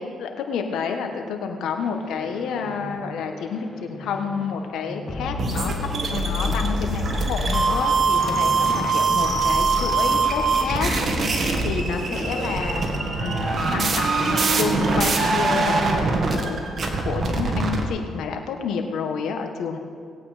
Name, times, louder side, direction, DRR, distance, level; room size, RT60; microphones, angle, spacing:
voice 1, 0.0-5.7 6.1-10.9 11.2-12.8 13.2-16.6 17.0-19.8, left 6 dB, 80° left, 5 dB, 1.4 m, -29 dB
sound 1, 1.8-13.0, left 3 dB, 25° left, 3.3 m, -32 dB
sound 2, 5.4-17.8, right 3 dB, 45° right, 1.8 m, -23 dB
Wind instrument woodwind instrument, 12.1-17.5, right 4 dB, 70° right, 2.6 m, -33 dB
19.0 x 8.6 x 5.1 m, 2.2 s
cardioid pair, 90°, 0 cm